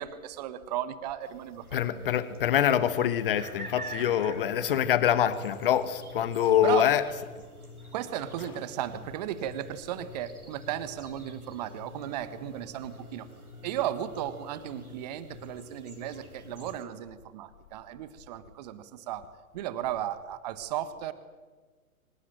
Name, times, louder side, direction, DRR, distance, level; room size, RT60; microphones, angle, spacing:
voice 1, 0.0-2.0 3.9-4.1 6.6-6.9 7.9-13.3 13.6-19.3 19.5-21.1, right 11 dB, 30° right, 13 dB, 1.6 m, -35 dB
sound 1, 1.2-16.8, right 2 dB, 85° right, 4.5 m, -50 dB
voice 2, 1.7-7.0, left 10 dB, 40° left, 14 dB, 1.4 m, -25 dB
sound 2, 2.5-16.8, left 3 dB, 55° left, 5.2 m, -49 dB
25.0 x 19.0 x 9.0 m, 1.4 s
figure-of-eight pair, 125°, 43 cm